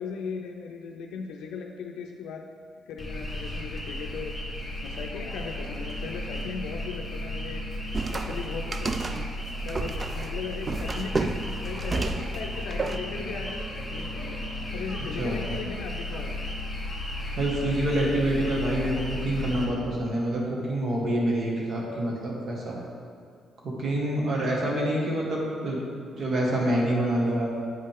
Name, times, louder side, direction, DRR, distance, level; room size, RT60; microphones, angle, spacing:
voice 1, 0.0-2.4 2.9-4.3 4.8-7.6 8.1-9.1 9.6-11.4 11.6-14.4 14.7-16.5, left 5 dB, 85° left, 2 dB, 0.4 m, -38 dB
sound 1, 3.0-19.7, left 1 dB, 5° left, 1.6 m, -34 dB
sound 2, 7.9-13.0, right 3 dB, 35° right, 0.4 m, -32 dB
voice 2, 17.4-22.8 23.6-25.8 26.2-27.5, right 1 dB, 50° right, -3 dB, 1.7 m, -26 dB
8.2 x 5.4 x 3.6 m, 2.2 s
cardioid pair, 90°, 0 cm